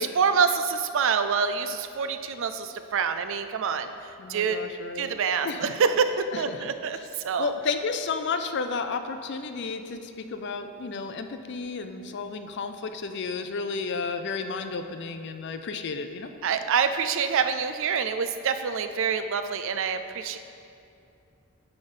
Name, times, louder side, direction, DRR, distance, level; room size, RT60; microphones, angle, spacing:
voice 1, 0.0-3.9 4.3-4.6 5.0-7.0 7.2-7.5 16.4-20.4, right 6 dB, 60° right, 9 dB, 0.4 m, -26 dB
voice 2, 4.2-5.2 5.4-5.7 6.3-6.7 7.4-16.3, left 4 dB, 55° left, 8 dB, 0.4 m, -32 dB
9.2 x 3.5 x 5.4 m, 2.6 s
head